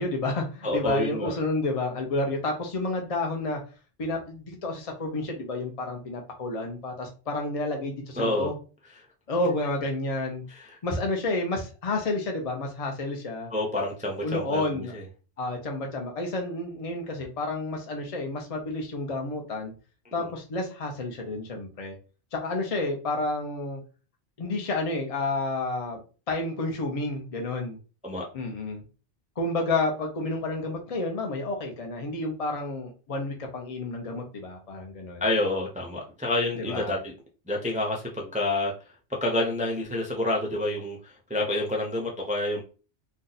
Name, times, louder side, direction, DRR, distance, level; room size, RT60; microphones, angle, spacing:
voice 1, 0.0-3.6 4.0-8.5 9.3-10.4 10.8-13.5 14.2-14.9 15.4-19.7 20.1-22.0 22.3-23.8 24.4-26.0 26.3-27.8 28.3-28.8 29.4-35.2 36.6-36.9, left 2 dB, 40° left, 2 dB, 0.6 m, -30 dB
voice 2, 0.6-1.3 8.2-8.5 10.5-10.8 13.5-15.0 20.1-20.3 28.0-28.3 35.2-37.1 37.5-42.6, left 1 dB, 10° right, -1 dB, 0.3 m, -28 dB
2.6 x 2.3 x 3.9 m, 0.35 s
omnidirectional pair, 1.2 m